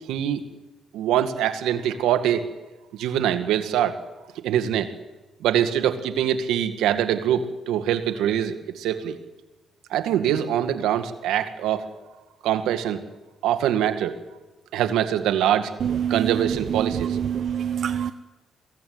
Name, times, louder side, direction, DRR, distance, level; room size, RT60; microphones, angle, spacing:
voice 1, 0.1-0.4 0.9-2.4 3.0-4.0 4.4-4.9 5.4-9.2 9.9-11.9 12.4-13.0 13.4-14.1 14.7-15.7 16.1-17.2, right 10 dB, 90° right, 8 dB, 1.9 m, -23 dB
voice 2, 16.8-18.1, right 8 dB, 65° right, 11 dB, 0.7 m, -26 dB
23.0 x 16.5 x 9.5 m, 1.2 s
cardioid pair, 90°, 0 cm